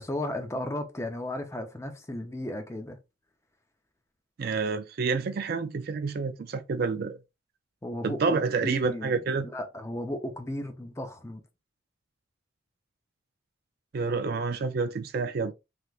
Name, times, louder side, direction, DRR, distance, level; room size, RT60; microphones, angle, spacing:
voice 1, 0.0-3.0 7.8-11.4, left 1 dB, 15° left, 0.5 m, -35 dB
voice 2, 4.4-7.2 8.0-9.5 13.9-15.5, right 4 dB, 50° right, 0.4 m, -28 dB
3.3 x 2.9 x 2.3 m
head